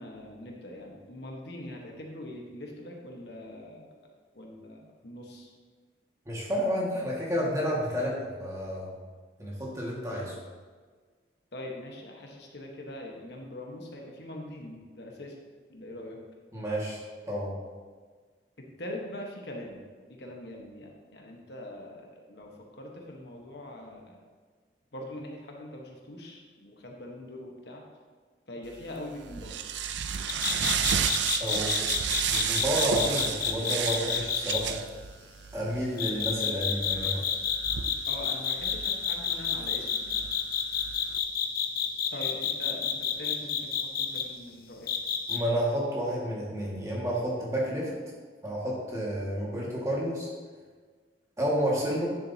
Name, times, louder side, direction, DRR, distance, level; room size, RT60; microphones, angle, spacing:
voice 1, 0.0-3.9 4.3-5.5 11.5-15.4 15.7-16.2 18.6-19.8 20.1-24.2 24.9-27.8 28.5-29.8 31.4-31.9 38.1-40.2 42.1-44.9, left 1 dB, 70° left, 0 dB, 1.2 m, -42 dB
voice 2, 6.3-8.9 9.4-10.3 16.5-17.0 17.3-17.5 31.4-31.6 32.3-34.8 35.5-37.3 45.3-47.9 48.4-50.3 51.4-52.1, equal, 15° right, -5 dB, 1.8 m, -30 dB
sound 1, 28.8-41.2, right 8 dB, 80° right, 0.5 m, -33 dB
sound 2, 30.3-34.6 36.0-44.2 44.9-45.4, left 8 dB, 55° left, 0.6 m, -29 dB
10.0 x 7.4 x 2.8 m, 1.5 s
head